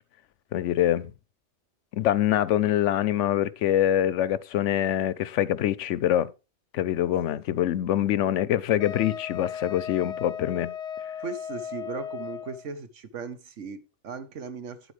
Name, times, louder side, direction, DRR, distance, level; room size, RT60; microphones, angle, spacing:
voice 1, 0.5-1.1 1.9-6.3 6.7-10.7, left 11 dB, 90° left, 1.0 m, -24 dB
Wind instrument woodwind instrument, 8.8-12.7, left 8 dB, 40° left, 0.6 m, -36 dB
voice 2, 11.2-14.9, right 5 dB, 90° right, 1.4 m, -37 dB
9.9 x 8.0 x 3.3 m
omnidirectional pair, 1.2 m